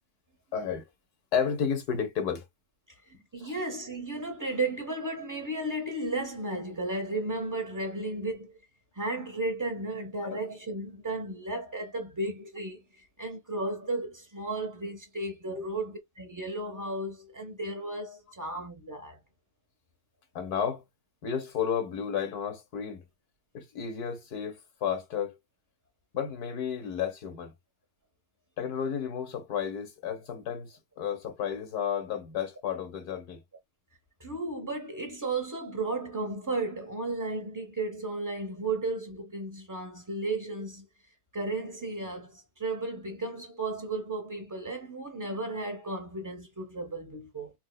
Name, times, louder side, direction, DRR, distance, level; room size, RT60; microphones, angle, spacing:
voice 1, 0.5-0.8 1.3-2.4 3.1-3.6 10.2-10.4 15.5-15.6 20.3-20.8 21.2-23.0 23.5-25.4 26.1-27.5 28.6-33.4, left 7 dB, 80° left, 1.6 m, -32 dB
voice 2, 3.1-8.6 8.9-12.8 13.2-19.2 34.2-40.9 41.3-47.5, right 2 dB, 15° right, 0.7 m, -34 dB
4.5 x 2.3 x 2.3 m
omnidirectional pair, 1.6 m